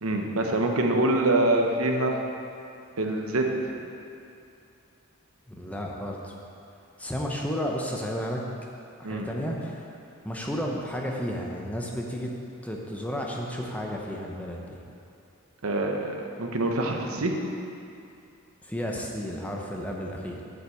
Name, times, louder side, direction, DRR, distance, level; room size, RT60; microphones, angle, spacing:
voice 1, 0.0-2.2 3.0-3.5 9.0-9.3 15.6-17.3, right 2 dB, 85° right, 2 dB, 1.0 m, -25 dB
voice 2, 5.5-6.3 7.0-8.4 9.0-9.9 10.2-12.3 12.6-14.8 18.6-20.4, equal, 5° left, -1 dB, 0.9 m, -32 dB
8.1 x 5.9 x 7.9 m, 2.6 s
head